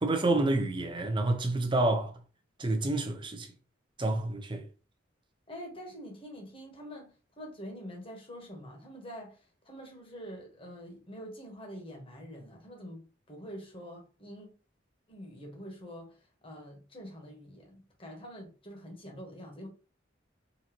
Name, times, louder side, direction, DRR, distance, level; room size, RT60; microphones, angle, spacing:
voice 1, 0.0-2.1 2.6-3.5 4.0-4.6, right 2 dB, 25° right, 0.7 m, -28 dB
voice 2, 5.5-9.4 9.6-14.5 15.1-16.1 16.4-19.7, equal, 30° left, 1.2 m, -45 dB
3.9 x 2.8 x 2.9 m
head